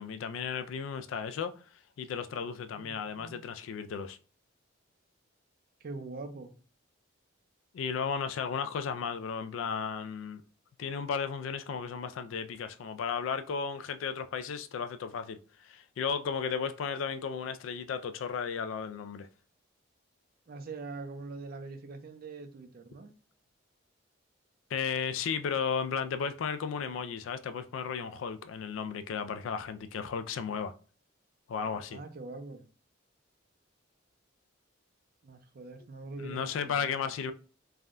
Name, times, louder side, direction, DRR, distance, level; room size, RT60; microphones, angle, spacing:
voice 1, 0.0-1.5 2.0-4.2 7.7-10.4 10.8-19.3 24.7-30.7 31.5-32.0 36.2-37.3, left 6 dB, 75° left, 0.3 m, -34 dB
voice 2, 2.7-3.4 5.8-6.5 20.5-23.1 31.9-32.7 35.2-37.0, right 3 dB, 50° right, 0.4 m, -43 dB
3.4 x 2.2 x 2.5 m
head